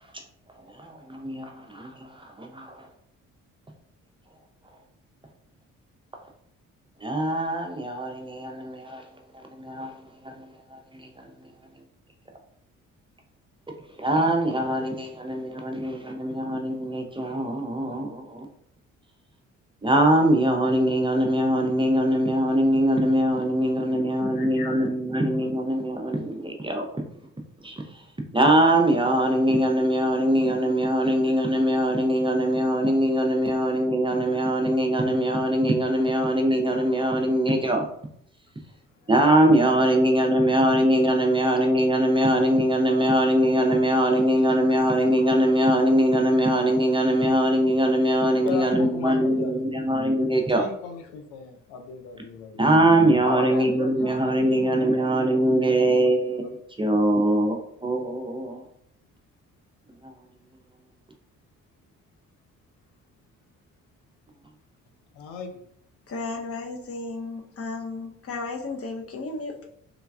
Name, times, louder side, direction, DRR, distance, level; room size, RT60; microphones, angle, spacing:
voice 1, 0.8-1.9 2.4-2.7 7.0-9.0 9.6-9.9 10.3-10.4 14.0-18.4 19.8-26.9 27.6-27.7 28.3-37.8 39.1-50.6 52.6-57.6 57.8-58.6, right 1 dB, 15° right, 2 dB, 0.5 m, -22 dB
voice 2, 23.9-25.1 39.0-39.1 39.9-40.0 48.3-49.8 50.6-52.7 53.2-56.5 57.2-57.4 65.1-65.6, left 5 dB, 80° left, 4 dB, 0.5 m, -38 dB
voice 3, 66.1-69.6, left 3 dB, 40° left, 1 dB, 0.7 m, -34 dB
3.2 x 2.3 x 2.3 m, 0.71 s
hypercardioid pair, 50°, 35 cm